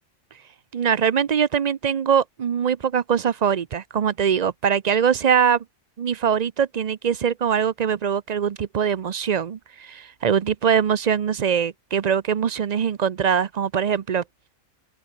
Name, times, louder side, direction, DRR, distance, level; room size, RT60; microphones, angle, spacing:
voice 1, 0.7-5.6 6.0-14.2, right 7 dB, 50° right, 0.5 m, -22 dB
open air
omnidirectional pair, 1.4 m